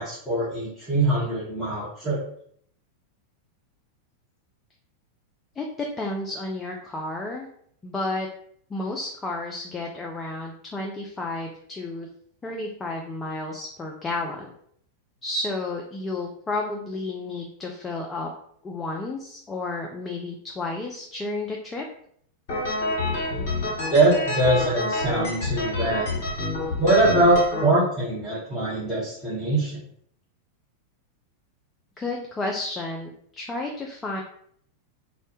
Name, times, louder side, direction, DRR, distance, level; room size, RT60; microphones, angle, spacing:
voice 1, 0.0-2.2 23.9-26.1 26.8-29.8, right 2 dB, 5° right, -12 dB, 0.8 m, -22 dB
voice 2, 5.6-7.5 7.8-8.3 8.7-12.1 12.4-14.5 15.2-18.3 18.6-21.8 32.0-34.2, left 2 dB, 15° left, 0 dB, 0.3 m, -31 dB
sound 1, 22.5-27.6, left 2 dB, 50° left, 0.9 m, -28 dB
2.1 x 2.0 x 2.9 m, 0.65 s
figure-of-eight pair, 90°, 0 cm